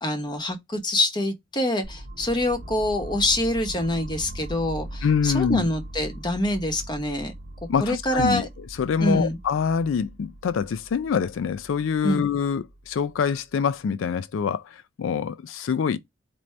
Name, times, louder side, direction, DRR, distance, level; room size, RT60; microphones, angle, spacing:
voice 1, 0.0-7.3 7.8-8.5 9.0-9.4 12.0-12.2, left 1 dB, 25° left, 0.8 m, -25 dB
sound 1, 1.8-13.8, right 1 dB, 55° right, 0.7 m, -40 dB
voice 2, 5.0-5.7 7.7-16.0, left 6 dB, 80° left, 0.4 m, -25 dB
4.5 x 2.6 x 3.1 m
head